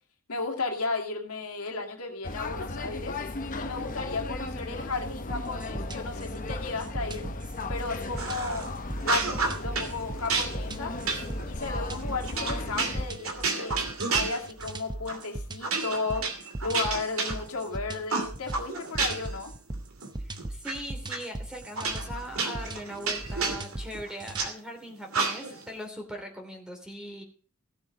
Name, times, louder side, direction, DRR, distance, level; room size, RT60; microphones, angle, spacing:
voice 1, 0.3-7.3 7.7-8.7 9.0-10.9 11.5-13.8 14.1-19.5, left 3 dB, 85° left, 1 dB, 2.3 m, -34 dB
sound 1, 2.2-13.1, left 2 dB, 35° left, 1.0 m, -36 dB
sound 2, 5.3-24.5, right 1 dB, 20° right, 0.7 m, -39 dB
sound 3, 8.2-8.7 9.0-9.9 10.3-14.8 15.1-15.3 15.6-17.7 18.1-19.4 19.7-20.7 21.1-21.2 21.8-24.5 25.1-25.7, right 4 dB, 70° right, 2.7 m, -31 dB
voice 2, 20.2-27.2, equal, 5° right, 2 dB, 2.9 m, -40 dB
16.0 x 7.0 x 5.1 m, 0.40 s
head